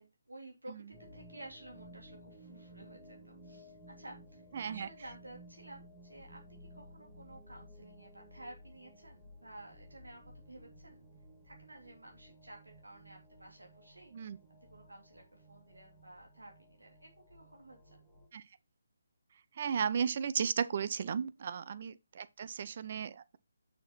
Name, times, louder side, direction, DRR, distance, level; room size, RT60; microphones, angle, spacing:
voice 1, 0.0-10.2 10.5-11.1 11.4-14.3 14.7-18.0 21.3-21.5, right 1 dB, 85° right, 3.2 m, -53 dB
sound 1, 0.9-18.3, equal, 10° left, 2.8 m, -56 dB
voice 2, 4.6-4.9 14.1-14.4 18.3-18.4 19.6-23.4, right 7 dB, 45° right, 0.7 m, -35 dB
6.8 x 6.6 x 4.2 m
figure-of-eight pair, 145°, 0 cm